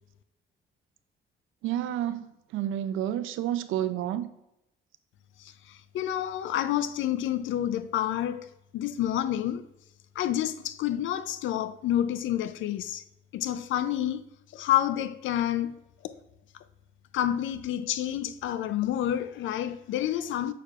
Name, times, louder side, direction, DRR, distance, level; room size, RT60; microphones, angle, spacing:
voice 1, 1.6-2.3 2.5-4.3, right 11 dB, 85° right, 0.5 m, -29 dB
voice 2, 5.9-8.5 8.7-9.6 10.2-13.0 13.3-14.2 14.5-15.8 16.0-16.1 17.1-20.5, left 11 dB, 80° left, 0.5 m, -28 dB
6.7 x 6.5 x 2.4 m
cardioid pair, 90°, 20 cm